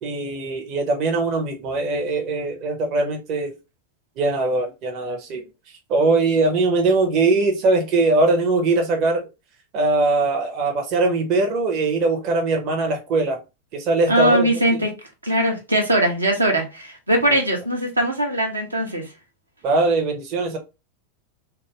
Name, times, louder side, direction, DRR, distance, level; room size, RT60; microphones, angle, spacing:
voice 1, 0.0-3.5 4.2-5.4 5.9-9.3 9.7-13.4 13.7-14.8 19.6-20.6, right 3 dB, 40° right, 0.6 m, -21 dB
voice 2, 14.1-14.9 15.2-19.1, right 1 dB, 80° right, 0.7 m, -21 dB
2.5 x 2.3 x 2.9 m
figure-of-eight pair, 90°, 0 cm